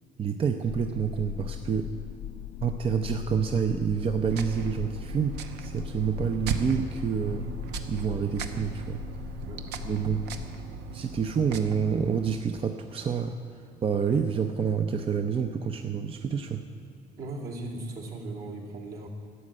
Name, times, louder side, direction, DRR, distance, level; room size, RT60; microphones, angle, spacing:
voice 1, 0.2-1.9 2.6-7.4 7.9-9.0 9.8-10.3 10.9-16.6, right 6 dB, 35° right, 6 dB, 0.6 m, -28 dB
sound 1, 0.7-10.5, left 11 dB, 75° left, 0.4 m, -39 dB
sound 2, 4.3-12.4, right 6 dB, 85° right, 0.9 m, -38 dB
voice 2, 17.2-19.1, right 2 dB, 65° right, -3 dB, 2.8 m, -38 dB
12.5 x 7.5 x 9.7 m, 2.5 s
cardioid pair, 110°, 17 cm